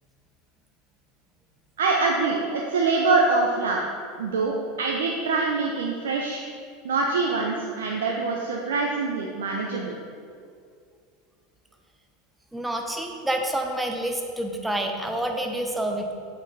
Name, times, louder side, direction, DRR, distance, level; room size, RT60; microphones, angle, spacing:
voice 1, 1.8-3.8 4.2-6.4 6.8-9.9, right 3 dB, 80° right, 0 dB, 0.9 m, -24 dB
voice 2, 12.5-16.1, right 1 dB, 5° right, 3 dB, 1.2 m, -28 dB
8.3 x 7.6 x 4.2 m, 2.2 s
hypercardioid pair, 85°, 0 cm